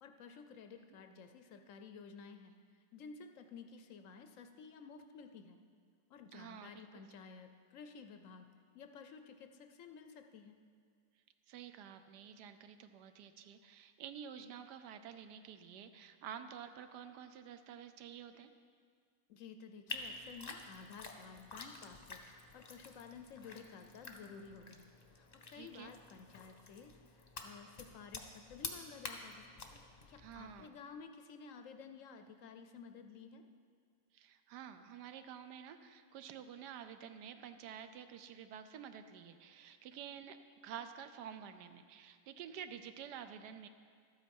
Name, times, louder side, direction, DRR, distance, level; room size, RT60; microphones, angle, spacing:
voice 1, 0.0-2.5 2.9-5.6 6.1-8.5 8.7-10.6 19.3-22.2 22.5-24.9 25.2-29.5 30.1-33.4, left 5 dB, 65° left, 7 dB, 0.8 m, -53 dB
voice 2, 6.3-7.2 11.5-18.5 25.5-25.9 30.2-30.7 34.1-40.4 40.6-43.7, right 8 dB, 80° right, 9 dB, 1.2 m, -50 dB
sound 1, 19.9-30.7, left 3 dB, 35° left, 0.8 m, -50 dB
12.5 x 8.5 x 5.3 m, 2.1 s
omnidirectional pair, 1.8 m